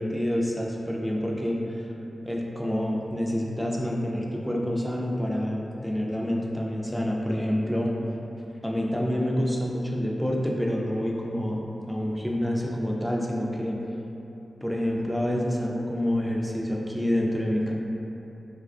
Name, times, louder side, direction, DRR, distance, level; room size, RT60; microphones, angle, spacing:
voice 1, 0.0-1.8 2.3-7.9 8.6-13.8 14.6-17.7, equal, ahead, -2 dB, 0.3 m, -27 dB
3.4 x 2.3 x 2.3 m, 2.9 s
wide cardioid pair, 80°, 0 cm